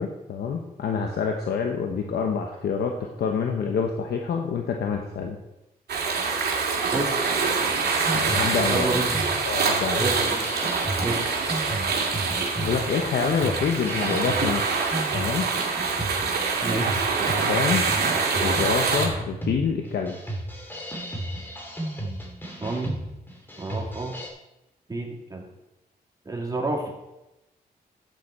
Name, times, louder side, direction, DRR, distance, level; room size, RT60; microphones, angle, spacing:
voice 1, 0.0-5.4 8.1-8.9 9.4-10.0 12.6-14.6 15.1-15.5 17.3-17.9 18.4-20.2, left 6 dB, 80° left, 3 dB, 1.0 m, -27 dB
sound 1, 5.9-19.1, right 5 dB, 85° right, 2.3 m, -25 dB
sound 2, 7.7-24.3, right 1 dB, 15° left, 3.0 m, -34 dB
voice 2, 8.7-9.1 10.0-10.4 11.0-11.2 16.6-17.0 22.6-22.9 23.6-24.1 24.9-25.4 26.2-26.8, right 2 dB, 25° right, -1 dB, 2.9 m, -29 dB
12.0 x 9.2 x 4.3 m, 0.93 s
cardioid pair, 85°, 16 cm